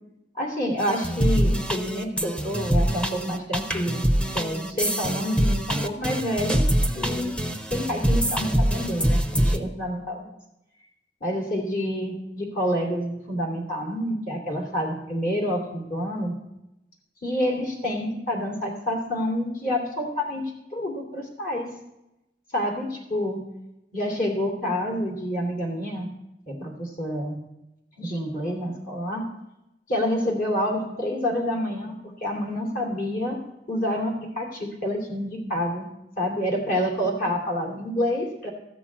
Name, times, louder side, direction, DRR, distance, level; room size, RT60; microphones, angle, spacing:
voice 1, 0.3-4.0 4.3-6.6 6.9-7.4 7.7-10.2 11.2-16.4 17.2-21.8 22.5-23.4 23.9-26.1 26.5-27.4 28.0-29.3 29.9-33.4 33.7-35.9 36.2-38.5, equal, 50° left, 0 dB, 2.9 m, -28 dB
sound 1, 0.8-9.6, equal, 5° left, 0.7 m, -24 dB
14.0 x 6.1 x 8.6 m, 0.88 s
head